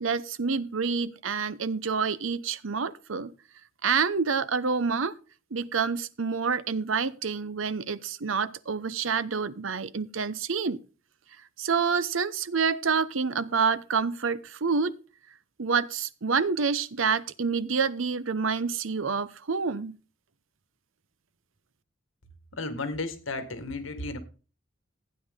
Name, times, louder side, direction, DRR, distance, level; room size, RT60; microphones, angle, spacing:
voice 1, 0.0-3.3 3.8-5.1 5.5-10.8 11.6-15.0 15.6-20.0, right 5 dB, 80° right, 0.8 m, -28 dB
voice 2, 22.5-24.2, left 2 dB, 80° left, 1.8 m, -33 dB
15.5 x 9.4 x 3.6 m
head